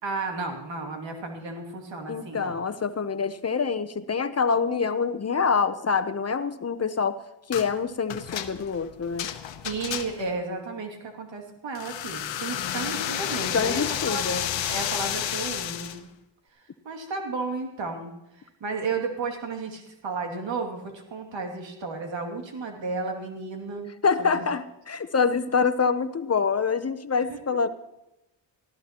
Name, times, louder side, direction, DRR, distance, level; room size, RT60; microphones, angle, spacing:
voice 1, 0.0-2.6 9.6-14.3 14.7-16.0 16.5-23.9 24.2-24.4 27.3-27.4, right 3 dB, 80° right, 3 dB, 2.6 m, -33 dB
voice 2, 2.1-7.2 7.5-9.3 13.5-14.4 24.0-27.7, left 5 dB, 35° left, 11 dB, 0.8 m, -26 dB
sound 1, 7.5-7.7 8.1-10.4 11.7-16.0, left 10 dB, 90° left, 1.0 m, -31 dB
18.5 x 14.0 x 3.0 m, 0.90 s
cardioid pair, 75°, 44 cm